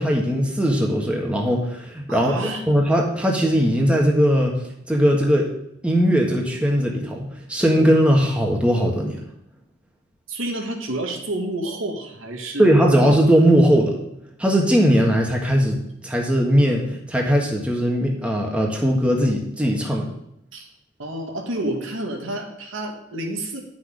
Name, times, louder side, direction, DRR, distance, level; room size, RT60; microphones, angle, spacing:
voice 1, 0.0-4.5 4.9-5.5 5.8-9.2 12.6-13.9 14.4-15.8 16.0-20.1, equal, 5° right, -1 dB, 1.5 m, -19 dB
voice 2, 2.1-2.6 10.3-13.0 19.9-20.0 20.5-20.7 21.0-23.6, right 1 dB, 85° right, 1 dB, 1.9 m, -29 dB
10.5 x 6.2 x 5.1 m, 0.80 s
head